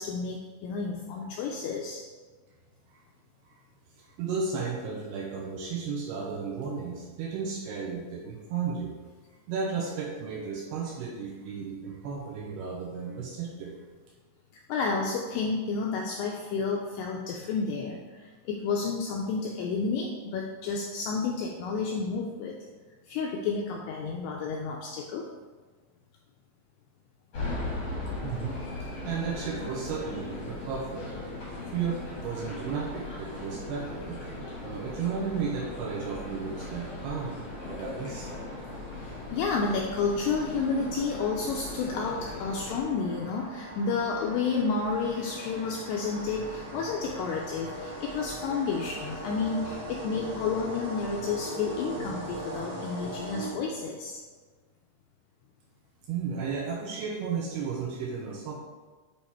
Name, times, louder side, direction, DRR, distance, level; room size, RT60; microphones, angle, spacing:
voice 1, 0.0-2.0 14.7-22.6 23.1-25.3 31.6-31.7 38.9-54.2, left 4 dB, 85° left, 0 dB, 2.3 m, -31 dB
voice 2, 4.0-8.9 9.5-13.7 28.2-28.6 29.0-31.0 31.7-34.2 34.6-38.3 56.1-58.5, right 5 dB, 80° right, -2 dB, 2.4 m, -34 dB
sound 1, 27.3-42.8, left 2 dB, 70° left, 1.2 m, -38 dB
sound 2, 37.2-54.0, right 1 dB, 60° right, 0.9 m, -41 dB
8.7 x 2.9 x 4.3 m, 1.4 s
omnidirectional pair, 5.2 m